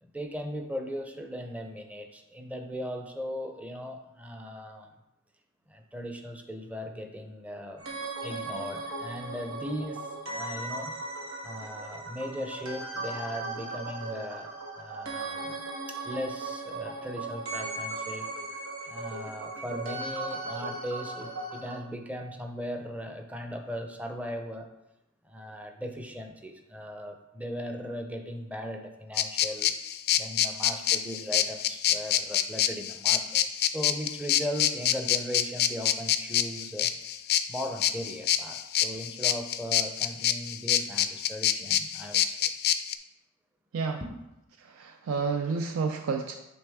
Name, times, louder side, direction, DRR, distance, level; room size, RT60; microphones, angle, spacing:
voice 1, 0.0-4.9 5.7-10.9 11.4-15.6 15.9-18.3 18.9-24.7 25.2-29.7 30.2-36.9 37.5-42.5 44.0-44.1, equal, 5° right, 4 dB, 0.6 m, -38 dB
sound 1, 7.8-21.8, right 2 dB, 90° right, 1.3 m, -37 dB
sound 2, 29.2-42.9, left 11 dB, 50° left, 0.3 m, -26 dB
voice 2, 44.6-46.3, right 4 dB, 75° right, 5 dB, 0.4 m, -30 dB
8.6 x 3.3 x 3.5 m, 0.93 s
head